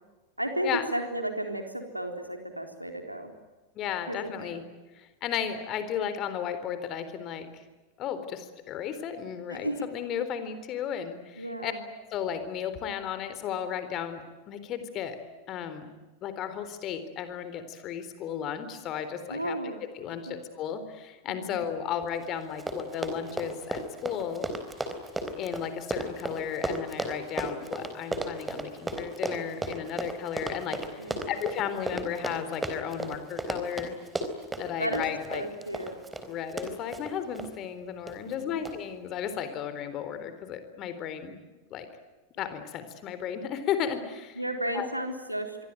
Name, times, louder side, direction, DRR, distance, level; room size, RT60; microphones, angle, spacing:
voice 1, 0.4-3.3 4.1-4.6 9.5-9.9 11.4-11.8 19.3-19.8 20.3-20.4 21.3-21.6 31.0-31.3 34.8-35.0 35.3-36.0 38.2-38.6 44.3-45.6, right 1 dB, 90° right, 5 dB, 3.8 m, -33 dB
voice 2, 3.8-4.6 5.0-7.6 8.0-11.7 12.1-15.2 15.5-15.9 16.2-19.7 20.0-24.5 25.4-30.8 31.3-34.0 34.6-35.4 36.3-41.4 41.7-41.9 42.4-44.4 44.7-44.9, left 8 dB, 35° left, 10 dB, 3.8 m, -34 dB
Run, 22.2-22.3 22.5-37.5 38.1-38.3 38.7-38.8, right 2 dB, 10° right, 3.9 m, -34 dB
27.0 x 23.0 x 9.3 m, 1.2 s
figure-of-eight pair, 90°, 0 cm